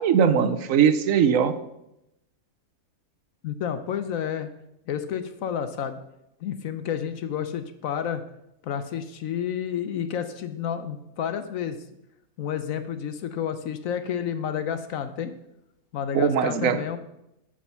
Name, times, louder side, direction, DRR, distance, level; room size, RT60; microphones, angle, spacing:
voice 1, 0.0-1.5 16.1-16.8, right 7 dB, 70° right, 10 dB, 1.0 m, -20 dB
voice 2, 3.4-4.5 4.9-6.0 6.4-8.2 8.6-11.8 12.4-15.3 15.9-17.0, left 8 dB, 70° left, 10 dB, 1.0 m, -30 dB
11.0 x 5.1 x 5.5 m, 0.86 s
omnidirectional pair, 1.5 m